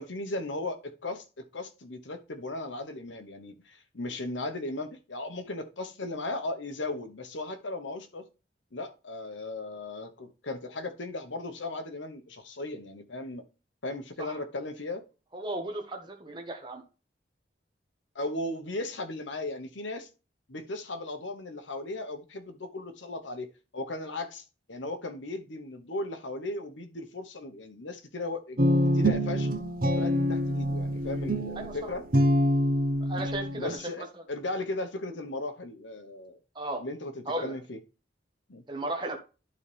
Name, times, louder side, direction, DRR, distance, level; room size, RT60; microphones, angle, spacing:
voice 1, 0.0-8.2 8.7-13.4 13.8-15.0 18.1-20.1 20.5-23.5 23.7-28.6 28.9-29.5 29.9-32.0 33.6-36.4 36.8-37.8 38.5-38.6, left 2 dB, 80° left, 1.1 m, -36 dB
voice 2, 15.3-16.8 31.6-31.9 33.1-34.1 36.5-36.8 37.3-37.5 38.7-39.2, right 1 dB, 25° right, 1.1 m, -35 dB
Guitar, 28.6-33.8, equal, 45° right, 0.9 m, -26 dB
11.5 x 4.1 x 3.4 m
head